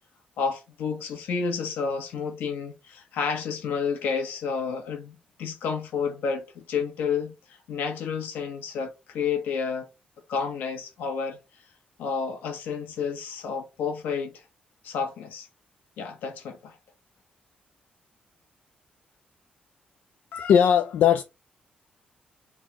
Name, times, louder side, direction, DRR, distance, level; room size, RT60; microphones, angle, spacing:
voice 1, 0.4-7.3 7.7-9.9 10.3-11.4 12.0-14.3 14.8-15.5 16.0-16.8, left 6 dB, 90° left, 1.3 m, -30 dB
voice 2, 20.3-21.2, left 8 dB, 65° left, 0.4 m, -19 dB
3.7 x 3.0 x 3.6 m
cardioid pair, 175°, 3 cm